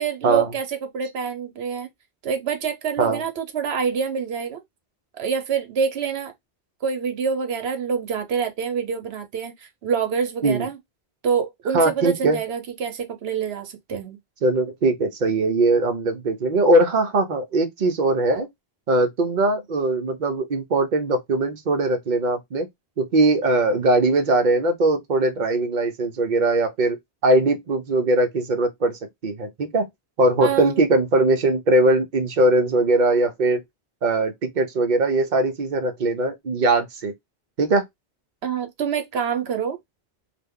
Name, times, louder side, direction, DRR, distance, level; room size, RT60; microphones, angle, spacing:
voice 1, 0.0-1.9 2.2-4.6 5.2-6.3 6.8-10.8 11.2-14.2 30.4-30.9 38.4-39.8, right 6 dB, 70° right, 1.0 m, -26 dB
voice 2, 11.7-12.4 14.4-18.5 18.9-22.7 23.0-27.0 27.2-29.9 30.2-33.6 34.0-37.1 37.6-37.8, right 2 dB, 50° right, 0.8 m, -20 dB
2.9 x 2.1 x 3.6 m
omnidirectional pair, 1.1 m